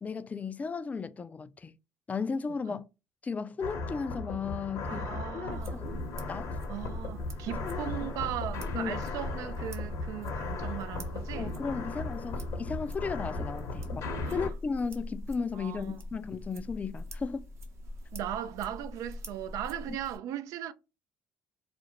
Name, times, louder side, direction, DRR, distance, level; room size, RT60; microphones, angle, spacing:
voice 1, 0.0-1.8 2.1-2.8 3.2-5.1 5.3-6.5 7.6-8.1 8.7-9.0 11.4-17.5 19.9-20.0, left 5 dB, 25° left, 0.3 m, -35 dB
sound 1, 3.6-14.5, left 3 dB, 60° left, 0.7 m, -37 dB
voice 2, 4.9-5.8 6.7-11.6 14.2-14.5 15.5-16.0 18.1-20.7, right 11 dB, 65° right, 0.3 m, -38 dB
sound 2, 5.5-20.2, left 1 dB, 45° right, 0.8 m, -43 dB
2.4 x 2.0 x 2.9 m
hypercardioid pair, 70°, 6 cm